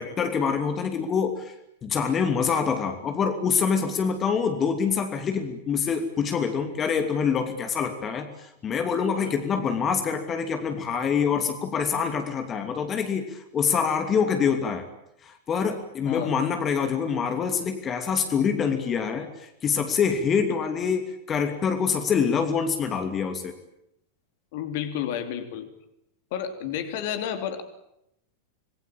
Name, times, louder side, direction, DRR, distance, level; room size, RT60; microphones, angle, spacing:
voice 1, 0.0-1.5 1.8-14.9 15.2-23.5, left 6 dB, 25° left, 7 dB, 2.8 m, -25 dB
voice 2, 24.5-25.7 26.3-27.6, left 9 dB, 50° left, 8 dB, 3.2 m, -31 dB
27.0 x 21.0 x 8.9 m, 0.80 s
figure-of-eight pair, 90°, 0 cm